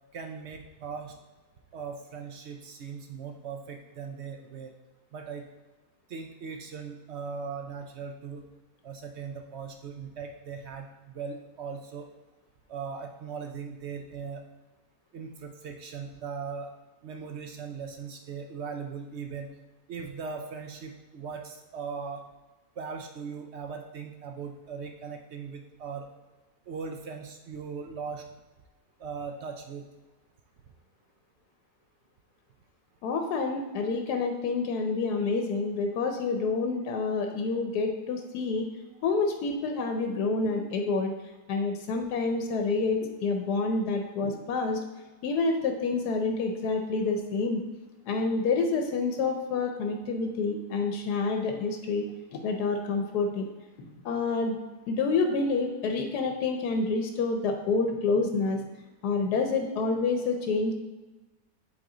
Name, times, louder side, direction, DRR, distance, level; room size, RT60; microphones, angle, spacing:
voice 1, 0.1-1.1 1.7-4.7 5.1-5.4 6.1-8.4 8.8-12.1 12.7-14.4 15.1-16.7 17.0-19.5 19.9-22.2 22.8-26.1 26.7-28.2 29.0-29.8, right 5 dB, 65° right, 5 dB, 0.6 m, -39 dB
voice 2, 33.0-38.7 39.0-41.2 41.5-44.8 45.2-47.6 48.1-53.5 53.8-54.6 54.9-58.6 59.0-60.7, left 4 dB, 90° left, 4 dB, 1.2 m, -28 dB
7.7 x 3.9 x 3.7 m, 1.1 s
omnidirectional pair, 1.7 m